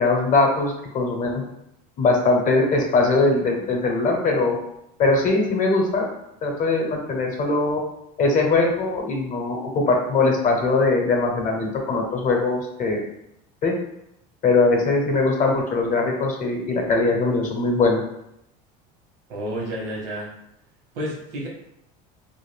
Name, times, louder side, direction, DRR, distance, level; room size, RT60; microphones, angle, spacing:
voice 1, 0.0-1.4 2.0-4.6 5.0-6.1 6.4-7.8 8.2-13.0 13.6-13.7 14.4-18.0, left 3 dB, 45° left, 1 dB, 0.7 m, -21 dB
voice 2, 19.3-20.3 20.9-21.5, equal, 90° right, -2 dB, 1.0 m, -30 dB
2.5 x 2.3 x 3.2 m, 0.79 s
supercardioid pair, 120°, 19 cm